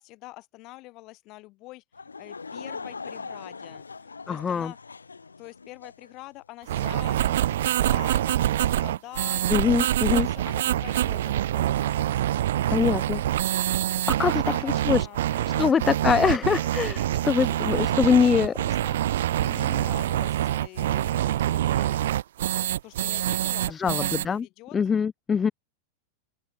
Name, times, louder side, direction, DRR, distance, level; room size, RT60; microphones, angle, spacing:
voice 1, 0.0-4.8 5.4-12.0 12.8-13.2 14.2-16.6 17.4-19.0 19.4-22.0 22.8-24.8, left 21 dB, 40° left, 7.9 m, -45 dB
Laughter / Crowd, 1.9-6.1, left 4 dB, 75° left, 1.2 m, -41 dB
voice 2, 4.3-4.7 9.5-10.3 12.7-13.2 14.2-15.1 15.6-18.5 23.7-24.5 24.7-25.5, left 6 dB, 20° left, 0.3 m, -23 dB
sound 1, 6.7-24.2, right 12 dB, 60° right, 0.9 m, -25 dB
open air
figure-of-eight pair, 90°, 0 cm